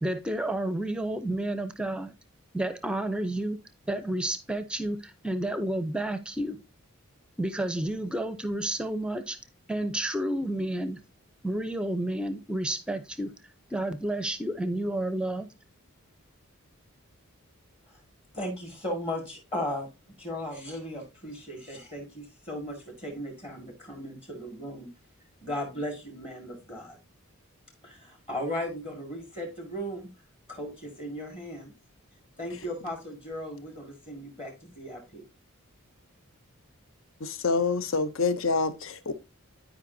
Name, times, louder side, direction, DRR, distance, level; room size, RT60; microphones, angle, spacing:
voice 1, 0.0-2.1 2.5-3.6 3.9-6.6 7.4-9.4 9.7-11.0 11.4-13.3 13.7-15.5, right 1 dB, 5° right, 0.6 m, -30 dB
voice 2, 18.3-19.9 20.2-24.9 25.4-27.0 27.8-30.1 30.5-31.7 32.4-35.2, left 1 dB, 25° left, 1.9 m, -36 dB
voice 3, 37.2-39.1, left 4 dB, 60° left, 0.7 m, -27 dB
11.5 x 5.0 x 2.7 m
head